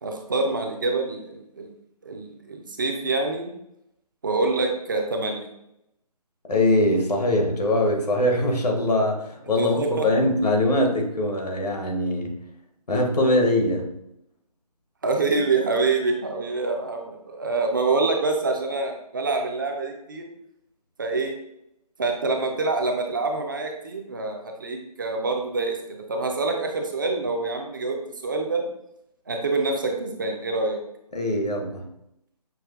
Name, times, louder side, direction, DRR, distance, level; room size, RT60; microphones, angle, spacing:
voice 1, 0.0-1.7 2.0-3.5 4.2-5.5 9.6-10.1 15.0-20.2 21.0-21.3 22.0-28.0 28.2-28.6 29.3-30.8, right 3 dB, 30° right, 3 dB, 0.4 m, -26 dB
voice 2, 6.5-12.3 12.9-13.9 31.1-31.8, left 1 dB, 75° left, 1 dB, 1.1 m, -22 dB
6.1 x 2.5 x 2.4 m, 0.80 s
figure-of-eight pair, 150°, 20 cm